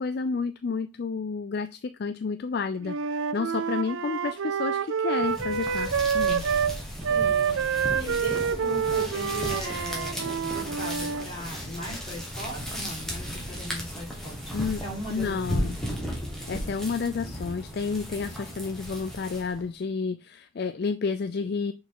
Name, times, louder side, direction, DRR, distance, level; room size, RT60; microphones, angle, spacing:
voice 1, 0.0-6.5 14.5-14.8 15.1-15.8 16.5-21.7, left 5 dB, 50° left, 10 dB, 0.3 m, -30 dB
Wind instrument woodwind instrument, 2.8-6.8 7.0-11.3, right 6 dB, 70° right, 0.5 m, -27 dB
sound 1, 5.2-19.7, equal, ahead, 1.6 m, -35 dB
voice 2, 7.1-16.0, equal, 25° left, -4 dB, 4.0 m, -39 dB
6.3 x 4.7 x 3.8 m, 0.26 s
head